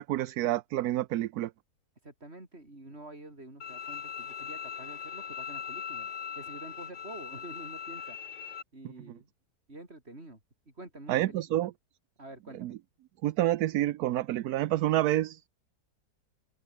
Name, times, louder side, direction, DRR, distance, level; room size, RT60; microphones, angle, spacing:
voice 1, 0.0-1.5 11.1-11.7 12.6-12.7 13.2-15.5, right 14 dB, 75° right, 1.1 m, -28 dB
voice 2, 2.0-6.1 6.4-8.2 8.7-9.3 9.7-10.4 10.7-11.7 12.2-12.8, right 2 dB, 40° right, 5.8 m, -47 dB
Bowed string instrument, 3.6-8.6, left 8 dB, 85° left, 2.0 m, -40 dB
omnidirectional pair, 1.7 m